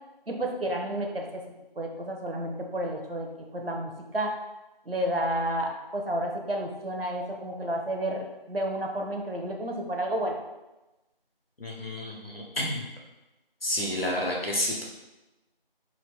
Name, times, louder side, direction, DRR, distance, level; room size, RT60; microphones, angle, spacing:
voice 1, 0.3-1.4 1.8-3.3 3.5-4.4 4.9-10.4, right 1 dB, 75° right, 2 dB, 0.7 m, -31 dB
voice 2, 11.6-12.8 13.6-14.8, left 1 dB, 75° left, -2 dB, 1.1 m, -30 dB
4.2 x 2.5 x 3.0 m, 1.0 s
figure-of-eight pair, 180°, 29 cm